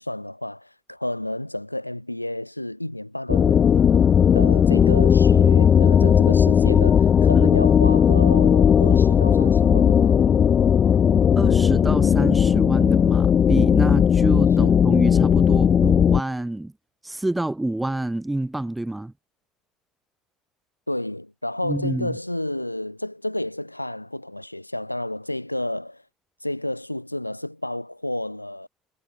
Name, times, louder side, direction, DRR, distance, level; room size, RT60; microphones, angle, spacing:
voice 1, 0.0-4.0 4.3-10.4 14.6-14.8 20.9-26.0 26.4-28.7, left 1 dB, 90° left, 4.2 m, -31 dB
sound 1, 3.3-16.2, left 8 dB, 40° left, 0.8 m, -17 dB
voice 2, 11.3-16.7 17.0-19.1 21.6-22.1, right 1 dB, 10° right, 5.1 m, -27 dB
figure-of-eight pair, 60°, 0 cm